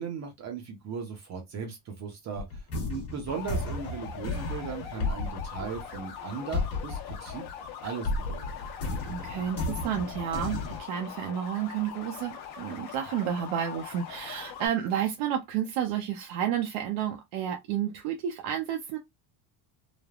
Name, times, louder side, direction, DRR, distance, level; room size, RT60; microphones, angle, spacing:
voice 1, 0.0-7.4 7.8-8.4, right 6 dB, 35° right, 0.6 m, -37 dB
sound 1, 2.3-7.7 8.0-10.8, left 2 dB, 30° left, 1.0 m, -33 dB
sound 2, 3.3-14.7, left 8 dB, 50° left, 0.8 m, -42 dB
voice 2, 9.1-19.0, right 9 dB, 75° right, 0.6 m, -31 dB
3.2 x 2.0 x 2.3 m
cardioid pair, 170°, 48 cm